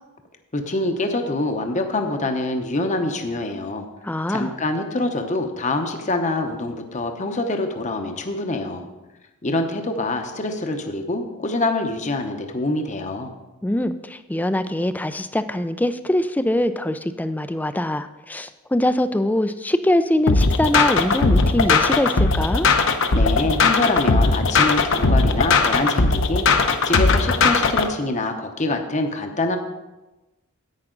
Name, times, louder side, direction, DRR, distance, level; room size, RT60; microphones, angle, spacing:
voice 1, 0.5-3.9 4.3-8.9 9.4-13.3 23.1-29.6, left 2 dB, 35° left, 5 dB, 0.8 m, -25 dB
voice 2, 4.0-4.5 13.6-22.7, left 1 dB, 10° left, 11 dB, 0.4 m, -23 dB
sound 1, 20.3-27.9, left 3 dB, 60° left, 0.8 m, -18 dB
10.5 x 8.8 x 3.8 m, 1.1 s
head